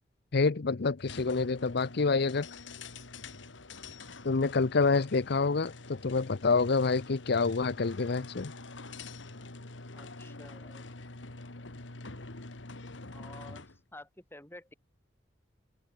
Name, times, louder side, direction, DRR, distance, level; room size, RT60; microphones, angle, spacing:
voice 1, 0.3-2.5 4.2-8.5, left 4 dB, 60° left, 0.7 m, -27 dB
sound 1, 1.0-13.8, left 3 dB, 75° left, 2.1 m, -46 dB
voice 2, 9.9-10.9 13.0-14.7, left 1 dB, 10° left, 6.0 m, -51 dB
open air
head